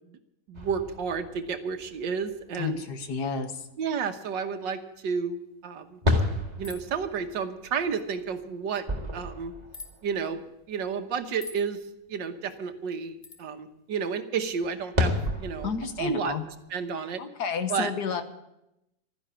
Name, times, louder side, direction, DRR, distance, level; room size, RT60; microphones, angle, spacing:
sound 1, 0.5-3.1 3.5-3.6 6.0-10.4 10.8-10.9 14.6-16.6, left 2 dB, 25° right, 1.9 m, -32 dB
voice 1, 0.5-2.8 3.8-6.0 6.6-8.9 9.1-9.5 10.0-10.4 10.7-11.8 12.1-15.7 16.0-16.4 16.7-17.2 17.7-17.9, right 6 dB, 80° right, 8 dB, 1.8 m, -31 dB
voice 2, 2.6-3.6 15.6-16.4 17.2-18.2, left 6 dB, 65° left, 8 dB, 1.8 m, -31 dB
sound 2, 6.6-7.0 9.7-9.9 11.4-11.7 13.2-13.4, left 3 dB, 20° left, 1.5 m, -43 dB
13.0 x 10.5 x 8.6 m, 0.86 s
omnidirectional pair, 1.9 m